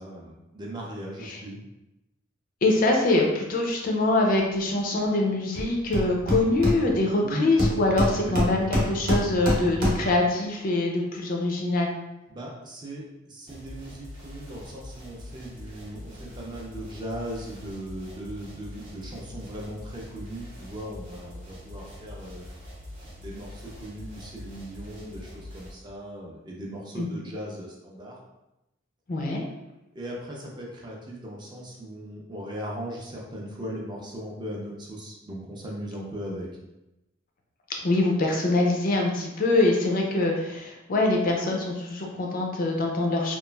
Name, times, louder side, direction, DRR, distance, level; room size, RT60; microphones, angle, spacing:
voice 1, 0.0-1.6 7.2-7.5 8.2-8.4 12.3-22.5 23.2-28.2 29.9-36.5, equal, 20° right, -2 dB, 0.4 m, -38 dB
voice 2, 2.6-11.9 27.0-27.1 29.1-29.4 37.8-43.4, left 2 dB, 45° left, 0 dB, 0.4 m, -24 dB
Hammer, 5.5-5.6 5.9-7.2 7.6-10.2, equal, 45° right, 0.8 m, -26 dB
sound 1, 13.5-25.7, left 1 dB, 85° right, 1.0 m, -43 dB
2.9 x 2.3 x 2.2 m, 0.94 s
head